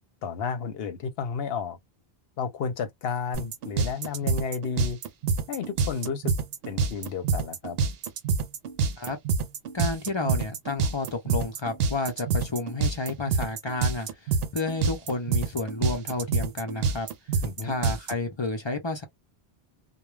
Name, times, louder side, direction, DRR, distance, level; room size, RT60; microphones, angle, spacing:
voice 1, 0.2-1.8 2.4-5.0 5.5-6.3 6.7-7.8 17.4-17.7, left 6 dB, 70° left, 0.8 m, -32 dB
sound 1, 3.3-18.1, right 5 dB, 70° right, 0.8 m, -27 dB
voice 2, 9.7-17.1 17.6-19.0, left 3 dB, 35° left, 0.5 m, -31 dB
2.2 x 2.1 x 3.1 m
omnidirectional pair, 1.1 m